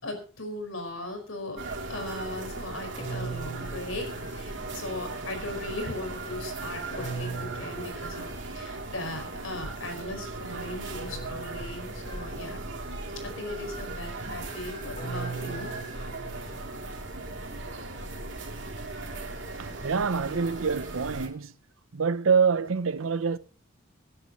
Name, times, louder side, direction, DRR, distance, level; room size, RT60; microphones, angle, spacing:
voice 1, 0.0-12.7 12.9-15.7 20.3-20.4, left 1 dB, 75° left, 5.0 m, -38 dB
sound 1, 1.6-21.3, right 2 dB, 60° right, 3.0 m, -38 dB
sound 2, 3.0-5.0 7.0-8.8 11.0-12.8 15.0-17.2, right 4 dB, 35° left, 4.2 m, -40 dB
voice 2, 19.6-21.5 21.9-23.4, right 5 dB, 80° right, 0.7 m, -26 dB
25.5 x 9.8 x 3.0 m
head